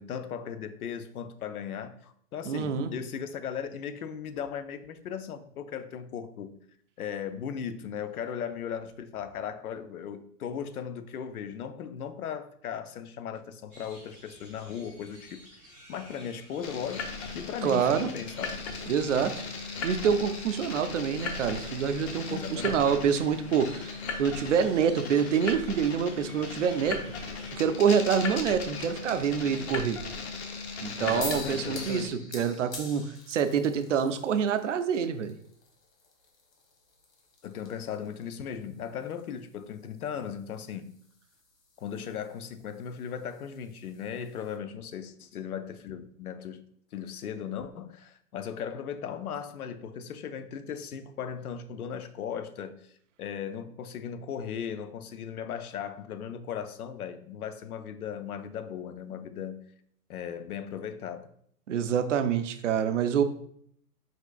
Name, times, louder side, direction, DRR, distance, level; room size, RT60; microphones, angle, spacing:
voice 1, 0.0-6.6 7.0-15.5 15.9-18.6 22.3-22.8 31.0-32.3 37.4-41.0 41.8-46.6 46.9-52.9 53.2-59.6 60.1-61.3, left 8 dB, 65° left, 0.7 m, -37 dB
voice 2, 2.4-2.9 17.6-18.1 18.9-19.3 19.8-23.9 24.2-27.0 27.5-30.0 30.8-35.3 61.7-63.2, right 7 dB, 55° right, 0.5 m, -26 dB
sound 1, 13.7-27.5, right 2 dB, 10° left, 0.4 m, -51 dB
sound 2, 16.6-32.1, left 4 dB, 45° left, 0.9 m, -37 dB
sound 3, 31.2-44.6, left 3 dB, 90° left, 1.8 m, -47 dB
4.8 x 4.4 x 2.4 m
hypercardioid pair, 145°, 47 cm